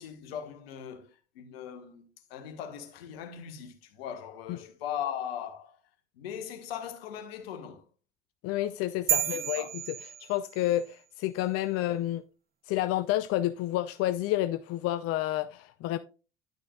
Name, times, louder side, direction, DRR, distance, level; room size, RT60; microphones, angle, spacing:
voice 1, 0.0-5.8 6.1-7.9 9.1-9.7, left 9 dB, 75° left, 1.5 m, -39 dB
voice 2, 8.4-9.7 10.2-12.2 12.7-16.0, left 14 dB, 50° left, 0.6 m, -29 dB
sound 1, 9.1-10.8, right 10 dB, 30° right, 0.6 m, -31 dB
10.5 x 6.1 x 2.3 m
hypercardioid pair, 70°, 30 cm